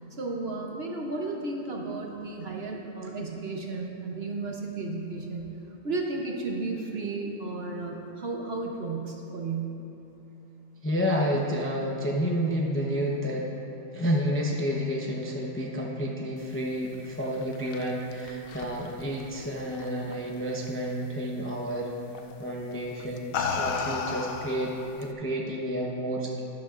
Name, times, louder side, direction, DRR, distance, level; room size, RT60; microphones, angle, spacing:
voice 1, 0.2-5.5 5.8-9.7, right 3 dB, 50° right, 0 dB, 1.0 m, -33 dB
voice 2, 10.8-13.5 13.9-21.9 22.4-26.4, equal, 15° left, -2 dB, 0.6 m, -30 dB
sound 1, 17.2-20.1 20.5-20.9 22.1-22.4 23.0-25.1, left 5 dB, 75° left, 1.0 m, -34 dB
12.0 x 11.0 x 2.5 m, 3.0 s
omnidirectional pair, 1.5 m